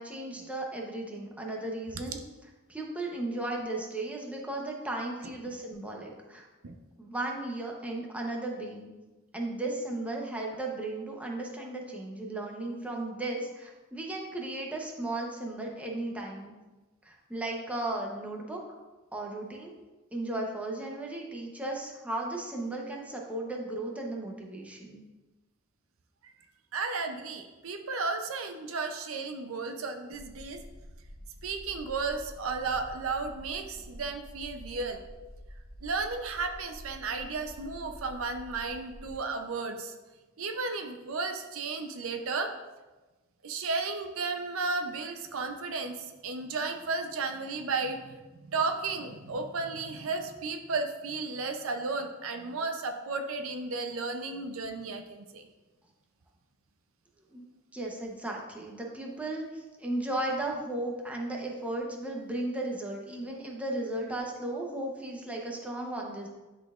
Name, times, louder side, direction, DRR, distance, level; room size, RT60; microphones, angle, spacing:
voice 1, 0.0-2.2 2.7-6.5 7.0-8.9 9.3-16.5 17.0-18.6 19.1-19.7 20.1-25.0 57.3-66.3, right 2 dB, 5° right, -1 dB, 0.8 m, -35 dB
voice 2, 26.7-30.6 31.4-35.0 35.8-39.9 40.4-42.5 43.4-55.5, right 4 dB, 80° right, 6 dB, 0.6 m, -34 dB
sound 1, 30.1-39.2, equal, 40° left, 1.2 m, -48 dB
10.5 x 4.1 x 2.4 m, 1.2 s
head